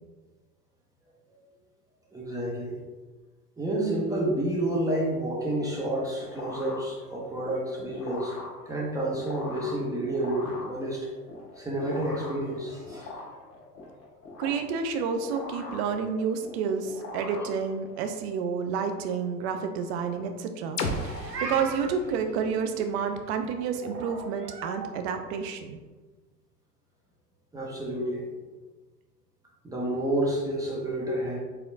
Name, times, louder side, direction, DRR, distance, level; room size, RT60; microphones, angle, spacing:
voice 1, 2.1-2.7 3.6-8.3 8.7-11.1 11.6-13.1 27.5-28.2 29.6-31.4, right 1 dB, 5° right, -3 dB, 0.7 m, -29 dB
sound 1, 5.7-18.1, left 3 dB, 30° left, 1.2 m, -42 dB
voice 2, 14.4-25.8, right 6 dB, 45° right, 7 dB, 0.6 m, -30 dB
sound 2, 20.8-24.6, left 2 dB, 85° left, 0.6 m, -37 dB
Meow, 20.8-22.0 23.8-24.9, right 4 dB, 90° right, 0.6 m, -38 dB
4.4 x 3.5 x 2.7 m, 1.3 s
figure-of-eight pair, 85°, 47 cm